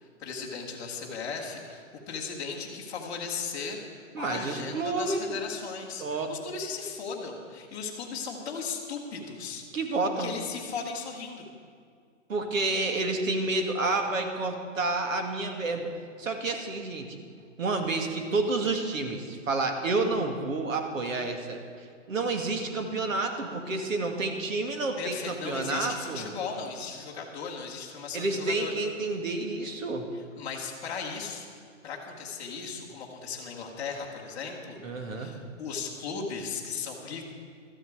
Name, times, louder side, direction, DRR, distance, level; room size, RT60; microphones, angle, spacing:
voice 1, 0.2-3.8 4.2-9.6 10.2-11.4 25.0-28.7 30.4-31.6 31.8-37.2, left 5 dB, 10° left, -6 dB, 1.0 m, -37 dB
voice 2, 4.1-5.4 6.0-6.3 9.7-10.3 12.3-15.9 16.2-17.2 17.6-26.3 28.1-30.1 34.8-35.3, right 3 dB, 80° right, 4 dB, 2.2 m, -29 dB
13.0 x 8.1 x 8.1 m, 2.2 s
hypercardioid pair, 165°, 39 cm